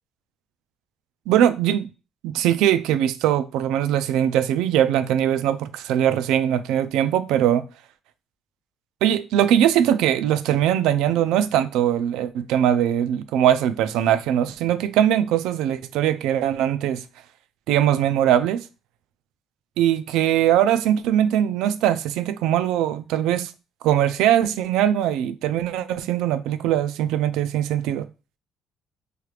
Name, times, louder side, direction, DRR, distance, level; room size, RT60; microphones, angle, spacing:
voice 1, 1.3-1.9 2.2-7.7 9.0-17.0 17.7-18.6 19.8-23.5 23.8-28.1, right 10 dB, 85° right, 0.3 m, -21 dB
3.2 x 3.2 x 2.4 m
cardioid pair, 135°, 0 cm